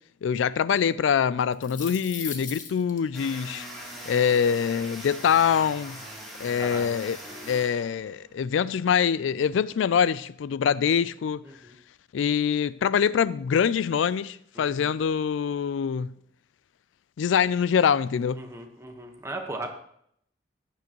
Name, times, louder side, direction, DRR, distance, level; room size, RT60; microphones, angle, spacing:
voice 1, 0.2-3.7 4.1-6.0 6.4-7.2 7.4-11.5 12.1-16.1 17.2-18.4, left 7 dB, 90° left, 0.3 m, -24 dB
sound 1, 1.4-3.0, left 7 dB, 45° left, 1.4 m, -37 dB
sound 2, 3.1-8.3, equal, ahead, 3.1 m, -41 dB
voice 2, 6.5-6.9 7.3-7.6 11.4-11.7 14.5-14.9 18.4-19.7, right 2 dB, 15° right, 1.3 m, -39 dB
14.5 x 10.0 x 3.0 m
head